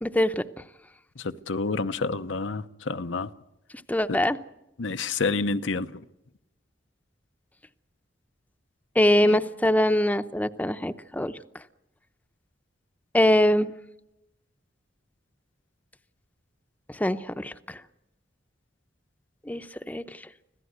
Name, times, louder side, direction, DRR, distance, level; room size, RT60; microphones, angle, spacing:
voice 1, 0.0-0.4 3.9-4.4 9.0-11.3 13.1-13.7 17.0-17.8 19.5-20.0, left 1 dB, 10° left, 0.7 m, -23 dB
voice 2, 1.2-3.3 4.1-4.2 4.8-6.0 9.2-9.4, left 3 dB, 85° left, 0.9 m, -29 dB
25.5 x 16.5 x 8.1 m
head